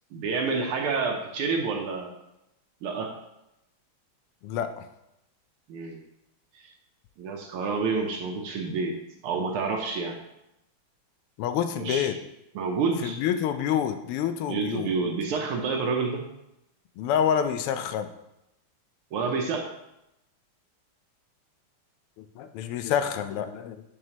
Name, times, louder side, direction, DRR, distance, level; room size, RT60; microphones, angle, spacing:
voice 1, 0.1-2.1 2.8-3.1 5.7-6.0 6.5-6.7 7.2-8.9 9.2-10.2 11.7-12.1 12.5-13.2 14.5-16.3 19.1-19.7, right 4 dB, 80° right, 2 dB, 1.6 m, -28 dB
voice 2, 4.4-4.8 11.4-12.2 13.0-14.9 17.0-18.1 22.2-23.8, left 9 dB, 90° left, 10 dB, 1.5 m, -27 dB
6.9 x 6.4 x 2.8 m, 0.87 s
omnidirectional pair, 2.4 m